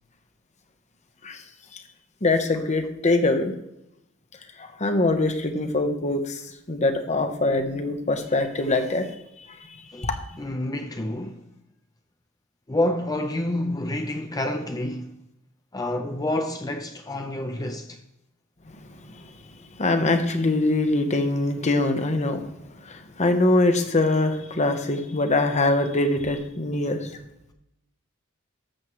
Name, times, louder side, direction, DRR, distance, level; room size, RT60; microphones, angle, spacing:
voice 1, 2.2-3.5 4.6-6.4 6.7-9.1 10.0-10.2 19.0-19.2 19.7-22.5 22.8-27.1, left 2 dB, 35° left, 1.1 m, -23 dB
voice 2, 10.4-11.5 12.7-15.2 15.7-18.0, left 1 dB, 20° left, 0.6 m, -28 dB
13.0 x 7.4 x 3.2 m
head